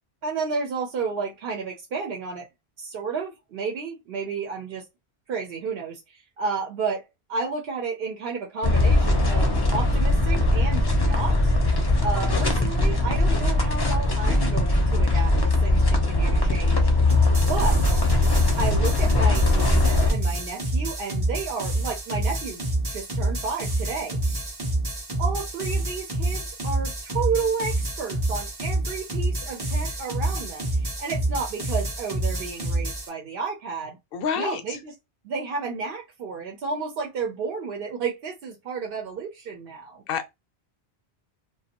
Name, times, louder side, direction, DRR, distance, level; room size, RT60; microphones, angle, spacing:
voice 1, 0.2-2.4 2.8-4.8 5.3-11.4 12.0-16.9 17.5-18.0 18.6-22.6 22.9-24.4 25.2-34.0 34.4-34.9 35.2-40.0, right 5 dB, 65° right, 0.8 m, -31 dB
sound 1, 8.6-20.1, left 2 dB, 30° left, 0.5 m, -21 dB
sound 2, 17.1-33.1, right 1 dB, 30° right, 0.5 m, -28 dB
voice 2, 34.1-34.8 40.1-40.3, left 7 dB, 65° left, 0.7 m, -28 dB
2.5 x 2.3 x 2.8 m
omnidirectional pair, 1.1 m